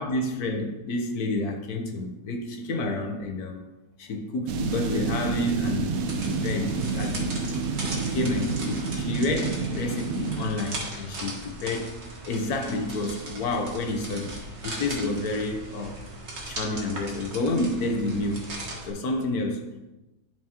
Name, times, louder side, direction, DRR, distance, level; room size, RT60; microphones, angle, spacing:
voice 1, 0.0-3.6 4.0-7.4 7.9-16.0 16.4-18.5 18.8-19.8, left 2 dB, 65° left, 4 dB, 1.2 m, -29 dB
sound 1, 4.5-10.5, right 4 dB, 65° right, 1.0 m, -29 dB
sound 2, 5.9-18.9, right 2 dB, 45° right, 1.5 m, -38 dB
10.5 x 4.8 x 2.9 m, 1.0 s
omnidirectional pair, 1.8 m